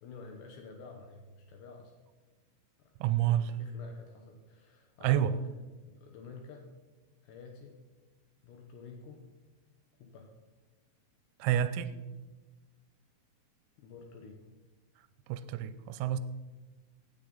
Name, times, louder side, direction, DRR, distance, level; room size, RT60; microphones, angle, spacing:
voice 1, 0.0-1.9 2.8-2.9 3.2-5.4 5.8-6.7 7.2-7.8 8.4-9.2 10.0-10.3 13.8-14.4, left 4 dB, 75° left, 3 dB, 2.6 m, -50 dB
voice 2, 3.0-3.5 5.0-5.3 11.4-11.9 15.3-16.2, right 11 dB, 90° right, 13 dB, 3.3 m, -28 dB
16.5 x 9.8 x 3.9 m, 1.3 s
omnidirectional pair, 6.0 m